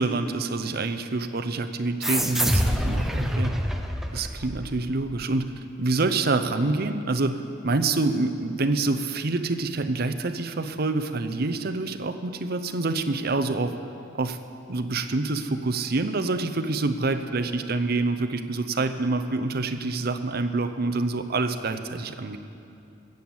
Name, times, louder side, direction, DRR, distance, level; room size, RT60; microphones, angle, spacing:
voice 1, 0.0-3.6 4.1-5.5 5.8-7.4 7.6-13.7 14.1-14.4 14.7-22.4, right 3 dB, 55° right, 8 dB, 0.7 m, -26 dB
sound 1, 2.0-5.1, equal, ahead, 0.8 m, -26 dB
16.5 x 7.9 x 7.2 m, 2.7 s
head